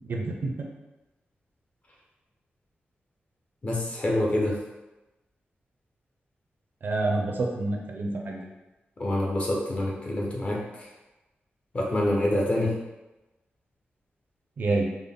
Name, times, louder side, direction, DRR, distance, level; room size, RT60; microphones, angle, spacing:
voice 1, 0.0-0.7 6.8-8.5 14.6-14.9, right 2 dB, 55° right, 1 dB, 0.5 m, -28 dB
voice 2, 3.6-4.6 9.0-10.6 11.7-12.8, left 1 dB, 35° left, -3 dB, 0.7 m, -26 dB
3.8 x 2.1 x 3.5 m, 1.0 s
wide cardioid pair, 165°, 4 cm